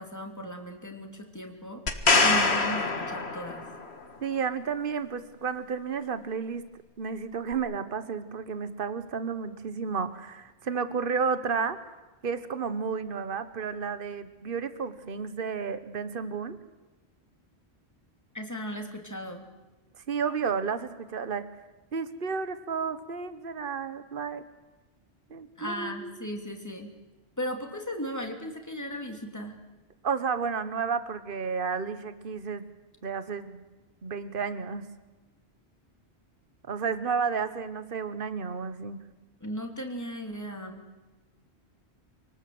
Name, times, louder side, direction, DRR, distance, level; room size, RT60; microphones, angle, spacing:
voice 1, 0.0-1.8 2.2-3.6 18.3-19.5 25.6-26.9 27.4-29.5 39.4-40.8, equal, 15° left, 3 dB, 3.0 m, -36 dB
sound 1, 1.9-3.8 7.5-7.6, left 3 dB, 70° left, 2.1 m, -24 dB
voice 2, 4.2-6.7 7.0-11.8 12.2-16.6 20.0-21.5 21.9-24.4 25.3-26.1 30.0-32.7 33.0-33.6 34.0-34.9 36.6-39.0, right 5 dB, 55° right, 12 dB, 1.4 m, -32 dB
27.5 x 19.0 x 7.9 m, 1.2 s
omnidirectional pair, 1.1 m